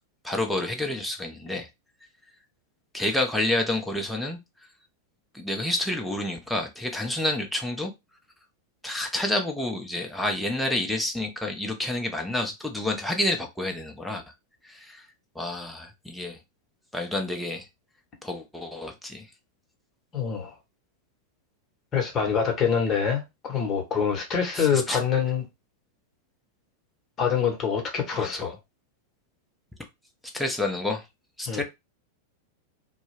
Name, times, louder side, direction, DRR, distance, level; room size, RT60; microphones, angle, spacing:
voice 1, 0.2-1.7 2.9-4.4 5.3-7.9 8.8-14.2 14.6-15.1 15.4-16.4 16.9-17.6 18.2-19.3 24.6-25.0 28.1-28.5 30.3-31.0 31.4-31.6, left 1 dB, 5° left, 0.6 m, -29 dB
voice 2, 20.1-20.5 21.9-25.4 27.2-28.5 31.5-31.6, left 7 dB, 30° left, 0.9 m, -25 dB
2.2 x 2.0 x 3.2 m
figure-of-eight pair, 90°, 0 cm